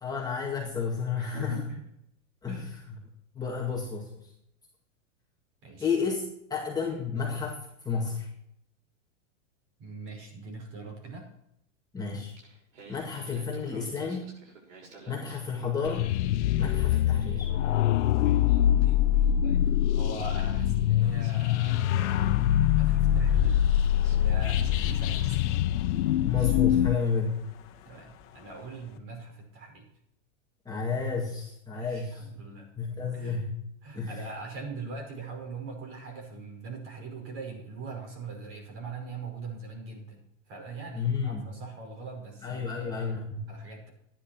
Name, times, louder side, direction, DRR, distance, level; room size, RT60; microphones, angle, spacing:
voice 1, 0.0-1.6 2.4-3.0 3.3-4.3 5.8-7.6 7.8-8.3 11.9-12.3 12.9-14.3 15.1-16.1 16.6-17.5 26.2-27.4 30.7-32.3 32.8-33.6 33.9-34.3 40.9-41.6 42.4-43.5, left 5 dB, 10° left, -3 dB, 2.0 m, -31 dB
voice 2, 1.2-1.8 2.5-2.8 5.6-5.9 9.8-11.3 19.4-19.6 19.9-23.6 24.2-25.6 27.9-29.9 31.7-32.7 33.1-33.4 33.8-43.9, right 4 dB, 35° right, 2 dB, 5.7 m, -42 dB
Singing, 12.1-16.1 16.4-19.6 20.6-20.7 21.2-25.4 26.0-26.1 26.3-27.2, right 3 dB, 90° right, 6.0 m, -53 dB
sound 1, 15.9-27.0, left 11 dB, 65° left, 0.8 m, -24 dB
sound 2, 21.0-29.0, left 10 dB, 35° left, 1.7 m, -46 dB
14.5 x 10.5 x 4.5 m, 0.76 s
supercardioid pair, 145°, 37 cm